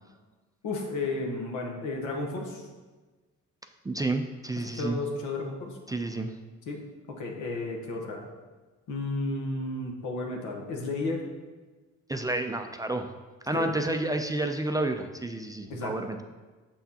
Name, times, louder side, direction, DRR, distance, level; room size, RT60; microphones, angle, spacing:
voice 1, 0.6-2.7 4.6-5.8 6.7-8.3 8.9-11.2 13.5-13.7 15.7-15.9, left 2 dB, 85° left, 1 dB, 1.1 m, -33 dB
voice 2, 3.8-5.0 5.9-6.4 12.1-13.1 13.4-16.2, right 2 dB, 10° right, 5 dB, 0.3 m, -30 dB
6.8 x 5.7 x 2.8 m, 1.3 s
cardioid pair, 90°, 30 cm